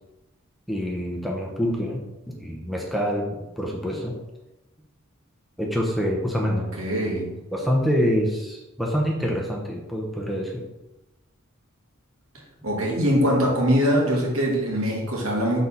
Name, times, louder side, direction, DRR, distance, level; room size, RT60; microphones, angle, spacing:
voice 1, 0.7-4.2 5.6-6.5 7.5-10.6, equal, ahead, -2 dB, 0.7 m, -26 dB
voice 2, 6.3-7.3 12.6-15.6, equal, 75° right, -2 dB, 1.8 m, -23 dB
4.5 x 3.9 x 5.4 m, 0.99 s
head